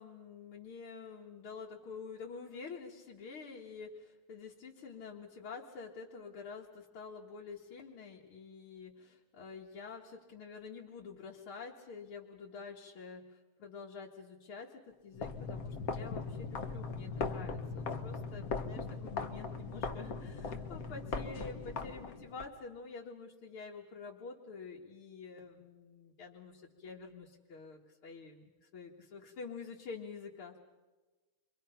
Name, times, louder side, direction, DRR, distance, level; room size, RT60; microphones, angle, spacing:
voice 1, 0.0-30.7, left 5 dB, 80° left, -4 dB, 2.5 m, -48 dB
sound 1, 15.1-22.5, left 4 dB, 45° left, 1.6 m, -39 dB
28.5 x 24.0 x 5.7 m, 1.2 s
omnidirectional pair, 2.3 m